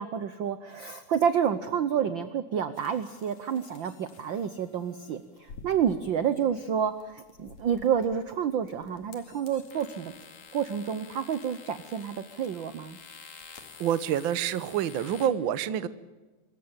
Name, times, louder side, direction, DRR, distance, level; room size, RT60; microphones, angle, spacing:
voice 1, 0.0-10.1 10.5-13.0, right 8 dB, 85° right, 12 dB, 1.0 m, -29 dB
sound 1, 2.7-15.3, left 5 dB, 65° left, 3.4 m, -50 dB
voice 2, 13.8-15.9, right 10 dB, 65° right, 15 dB, 1.2 m, -27 dB
26.0 x 14.5 x 8.9 m, 1.2 s
omnidirectional pair, 3.5 m